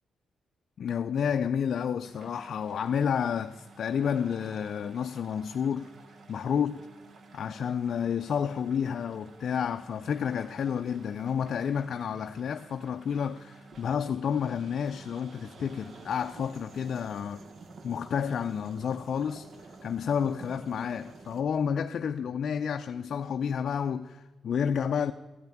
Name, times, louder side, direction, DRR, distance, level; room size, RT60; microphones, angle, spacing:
voice 1, 0.8-5.9 6.3-6.7 7.3-17.4 17.8-19.5 19.8-25.1, left 7 dB, 65° left, 0.4 m, -30 dB
sound 1, 2.0-21.4, right 3 dB, 55° right, 1.0 m, -51 dB
14.0 x 5.7 x 9.1 m
cardioid pair, 80°, 0 cm